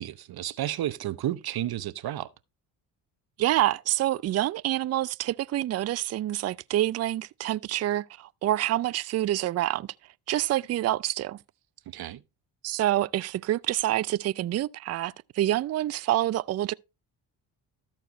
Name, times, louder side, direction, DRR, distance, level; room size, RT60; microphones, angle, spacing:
voice 1, 0.0-2.3 11.9-12.2, right 13 dB, 55° right, 0.9 m, -32 dB
voice 2, 3.4-9.9 10.3-11.4 12.6-16.7, right 14 dB, 35° right, 0.4 m, -27 dB
13.5 x 4.6 x 4.0 m
supercardioid pair, 70°, 44 cm